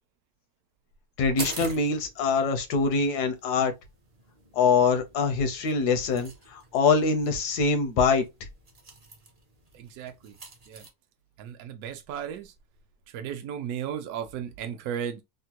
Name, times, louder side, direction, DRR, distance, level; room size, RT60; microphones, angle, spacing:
voice 1, 1.2-3.7 4.5-8.2, left 4 dB, 85° left, 1.3 m, -24 dB
sound 1, 1.4-10.9, right 3 dB, 40° right, 0.5 m, -45 dB
voice 2, 9.7-10.4 10.7-10.9 11.4-12.5 13.1-15.2, right 9 dB, 75° right, 1.0 m, -35 dB
3.6 x 2.1 x 2.8 m
omnidirectional pair, 1.7 m